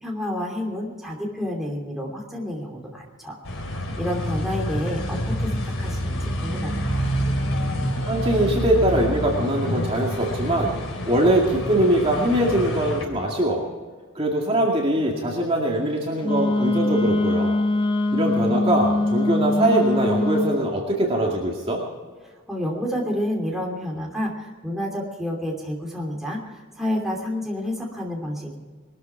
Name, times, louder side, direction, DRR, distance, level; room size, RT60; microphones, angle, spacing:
voice 1, 0.0-3.4 4.0-7.1 22.5-26.4 26.8-28.6, left 1 dB, ahead, -2 dB, 2.9 m, -29 dB
sound 1, 3.4-13.1, equal, 85° left, 3.4 m, -27 dB
voice 2, 8.1-10.8 11.1-13.6 14.1-17.6 18.1-21.8, right 1 dB, 25° right, -1 dB, 2.2 m, -22 dB
Wind instrument woodwind instrument, 16.2-20.6, left 2 dB, 25° left, 1.0 m, -22 dB
21.0 x 13.5 x 4.6 m, 1.4 s
head